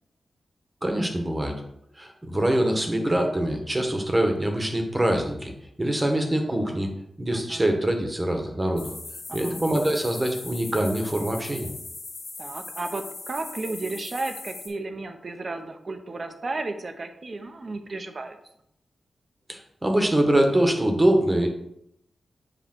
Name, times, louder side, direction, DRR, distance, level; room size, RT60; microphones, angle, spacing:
voice 1, 0.8-1.6 2.0-5.5 5.8-6.9 7.2-8.9 9.3-11.7 19.5-21.5, right 1 dB, 20° right, 3 dB, 1.2 m, -24 dB
voice 2, 7.3-7.7 9.3-9.6 12.4-18.4, right 2 dB, 45° right, 7 dB, 0.8 m, -33 dB
sound 1, 8.8-14.7, left 3 dB, 55° left, 1.7 m, -39 dB
7.6 x 3.2 x 6.1 m, 0.76 s
wide cardioid pair, 105°, 0 cm